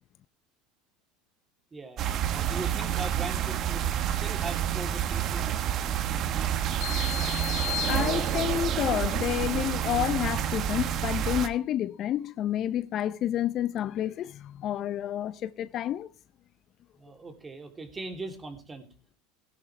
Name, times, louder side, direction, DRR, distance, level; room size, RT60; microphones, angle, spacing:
voice 1, 1.7-2.0 2.3-5.6 7.2-7.3 17.0-18.9, right 3 dB, 20° right, 3.1 m, -40 dB
sound 1, 2.0-11.5, right 10 dB, 45° right, 1.3 m, -29 dB
sound 2, 6.8-8.7, left 20 dB, 65° left, 3.1 m, -35 dB
voice 2, 7.9-16.1, left 11 dB, 45° left, 0.6 m, -29 dB
17.5 x 11.0 x 3.3 m
supercardioid pair, 115°, 0 cm